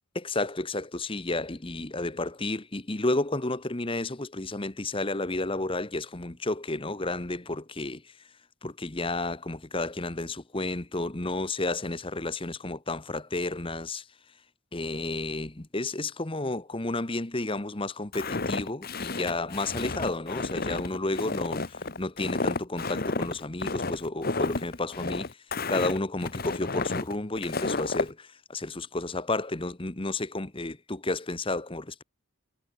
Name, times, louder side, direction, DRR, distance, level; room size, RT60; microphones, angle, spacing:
voice 1, 0.1-8.1 8.6-14.1 14.7-25.4 25.7-32.0, left 2 dB, 25° left, 1.2 m, -32 dB
Walk footsteps, 18.1-28.1, left 3 dB, 45° left, 1.3 m, -31 dB
head